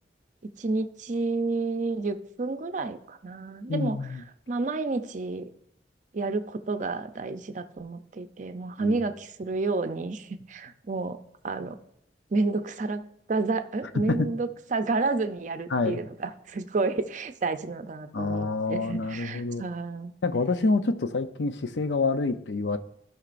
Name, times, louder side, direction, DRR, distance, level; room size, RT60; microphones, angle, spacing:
voice 1, 0.4-4.0 4.5-5.5 6.1-11.2 11.4-11.8 12.3-13.0 13.3-20.1, right 3 dB, 45° right, 9 dB, 0.5 m, -30 dB
voice 2, 3.7-4.2 8.8-9.0 14.1-14.3 15.7-16.0 18.1-19.6 20.2-22.8, left 3 dB, 75° left, 10 dB, 0.6 m, -27 dB
15.0 x 5.8 x 2.5 m, 0.74 s
head